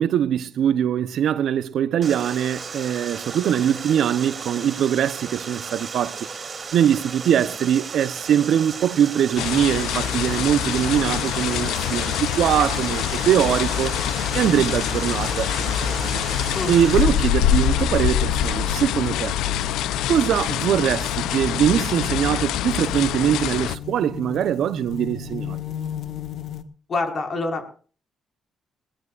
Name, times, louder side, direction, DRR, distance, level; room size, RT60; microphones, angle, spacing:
voice 1, 0.0-6.3 6.7-14.0 14.3-16.2 16.7-19.3 20.1-25.6, right 9 dB, 70° right, 0.9 m, -22 dB
Water, 2.0-17.0, right 5 dB, 40° right, 3.4 m, -35 dB
sound 1, 9.4-23.8, left 10 dB, 90° left, 0.7 m, -24 dB
sound 2, 16.9-26.6, left 9 dB, 65° left, 1.6 m, -38 dB
voice 2, 26.9-27.7, left 3 dB, 45° left, 5.5 m, -26 dB
21.0 x 19.0 x 2.5 m
cardioid pair, 90°, 0 cm